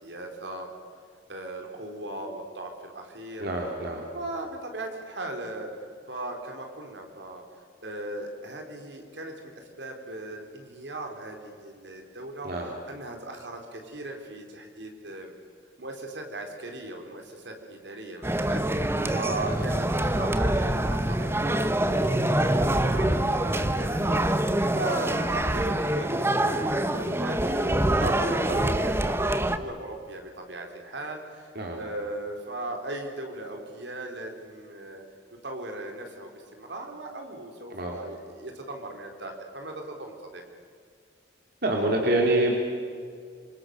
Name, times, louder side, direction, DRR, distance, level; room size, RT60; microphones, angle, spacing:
voice 1, 0.0-0.7 1.3-3.4 4.1-5.7 6.1-7.4 7.8-12.5 12.9-15.3 15.8-26.6 26.9-35.0 35.4-36.3 36.6-40.4, right 2 dB, 75° right, 3 dB, 4.1 m, -38 dB
voice 2, 3.4-4.0 12.4-12.7 19.4-19.7 28.0-28.6 31.5-31.8 37.7-38.0 41.6-42.6, right 1 dB, 60° right, 1 dB, 3.3 m, -27 dB
sound 1, 18.2-29.6, right 1 dB, 15° right, 1.0 m, -25 dB
27.0 x 25.5 x 6.6 m, 2.1 s
head